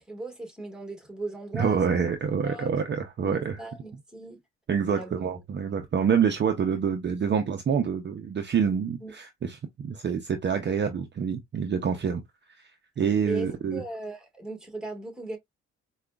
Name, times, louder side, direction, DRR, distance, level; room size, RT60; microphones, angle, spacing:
voice 1, 0.0-1.8 2.4-2.7 3.2-4.4 4.9-5.1 9.0-9.1 13.2-15.4, right 2 dB, ahead, 1.6 m, -37 dB
voice 2, 1.5-3.6 4.7-12.2 12.6-12.7 13.0-13.8, right 7 dB, 35° right, 0.6 m, -27 dB
4.8 x 2.3 x 2.3 m
cardioid pair, 90°, 30 cm